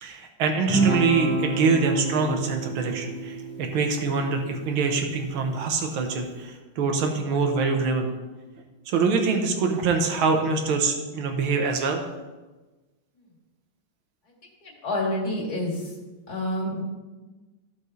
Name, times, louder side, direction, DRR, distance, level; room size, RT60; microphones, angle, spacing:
voice 1, 0.0-8.1 8.9-12.0, right 4 dB, 80° right, 4 dB, 1.8 m, -24 dB
Guitar, 0.7-5.3, right 2 dB, 5° left, 1.4 m, -29 dB
voice 2, 14.6-15.9 16.3-16.8, left 1 dB, 50° left, -3 dB, 2.7 m, -28 dB
14.5 x 5.4 x 3.2 m, 1.2 s
omnidirectional pair, 2.3 m